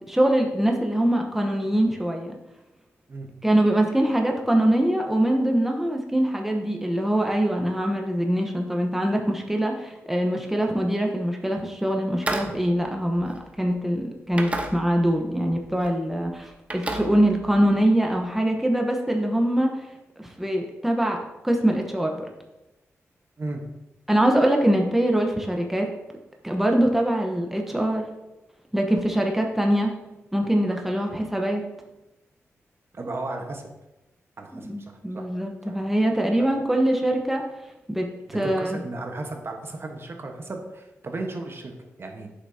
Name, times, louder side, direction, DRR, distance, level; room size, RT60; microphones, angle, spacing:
voice 1, 0.1-2.4 3.4-19.7 20.2-21.2 21.4-22.3 24.1-25.9 26.4-28.0 28.7-29.9 30.3-31.6 34.5-37.4 37.9-38.8, right 1 dB, 5° right, 2 dB, 1.0 m, -23 dB
sound 1, 12.1-13.8 14.3-15.2 15.5-15.9 16.3-17.9, right 1 dB, 25° right, 1.0 m, -33 dB
voice 2, 32.9-33.7 34.4-35.2 35.7-35.8 36.4-36.5 38.4-42.3, right 2 dB, 50° right, 3 dB, 1.2 m, -35 dB
8.1 x 6.0 x 2.8 m, 0.97 s
cardioid pair, 50°, 5 cm